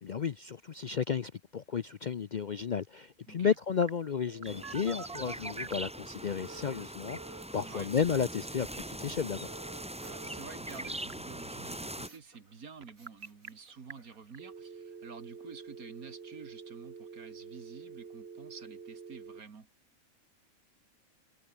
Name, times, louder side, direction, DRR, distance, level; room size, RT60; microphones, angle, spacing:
voice 1, 0.0-9.5, left 7 dB, 55° left, 0.5 m, -33 dB
Telephone, 3.8-5.9 6.4-7.4 9.4-10.4 10.7-11.1 12.8-13.5 13.9-14.0 14.3-19.4, right 5 dB, 50° right, 1.7 m, -47 dB
sound 1, 4.4-12.1, right 1 dB, 5° right, 1.0 m, -42 dB
sound 2, 7.5-8.4 9.0-11.0 11.3-12.6 13.0-14.4, right 2 dB, 70° right, 6.4 m, -63 dB
voice 2, 10.1-19.7, right 5 dB, 85° right, 2.5 m, -49 dB
omnidirectional pair, 1.5 m